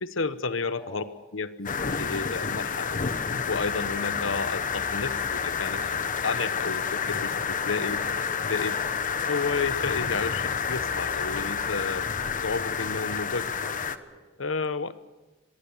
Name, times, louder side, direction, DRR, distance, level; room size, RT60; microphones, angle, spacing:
voice 1, 0.0-1.0 1.3-1.7 2.0-3.0 3.5-8.0 8.5-8.8 9.3-13.4 14.4-14.9, left 4 dB, 80° left, 13 dB, 1.1 m, -31 dB
voice 2, 0.8-1.2 1.7-2.0 5.1-5.4 7.9-8.4 8.7-9.3 13.6-14.2, left 1 dB, 25° left, 3 dB, 6.6 m, -47 dB
sound 1, 1.7-14.0, left 6 dB, 45° left, 1.0 m, -29 dB
24.0 x 21.0 x 7.3 m, 1.2 s
head